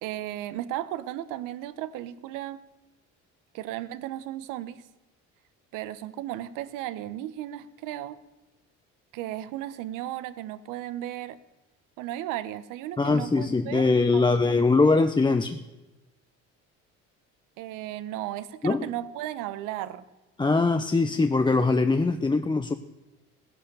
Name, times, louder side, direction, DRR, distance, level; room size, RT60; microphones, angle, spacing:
voice 1, 0.0-2.6 3.5-4.8 5.7-8.2 9.1-11.4 12.0-15.0 17.6-20.0, right 13 dB, 85° right, 15 dB, 0.9 m, -35 dB
voice 2, 13.0-15.6 18.6-18.9 20.4-22.7, left 3 dB, 15° left, 8 dB, 0.7 m, -22 dB
16.0 x 11.0 x 6.8 m, 1.1 s
cardioid pair, 95°, 31 cm